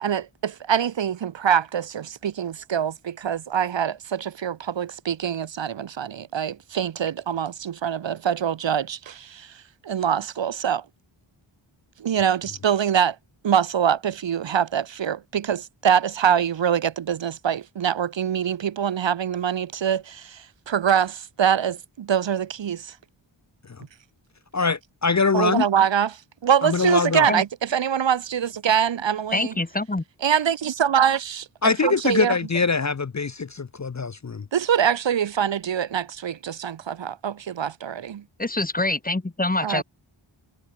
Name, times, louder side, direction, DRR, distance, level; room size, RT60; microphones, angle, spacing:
voice 1, 0.0-9.5 9.8-10.8 12.0-13.2 13.4-22.9 25.3-26.1 26.4-29.5 30.2-31.5 31.8-32.3 34.5-38.2 39.6-39.8, right 8 dB, 60° right, 0.6 m, -24 dB
voice 2, 24.5-25.7 26.6-27.3 31.6-34.5, left 4 dB, 35° left, 0.6 m, -23 dB
voice 3, 29.3-30.0 38.4-39.8, left 2 dB, 15° left, 1.0 m, -25 dB
wide cardioid pair, 40°, 50 cm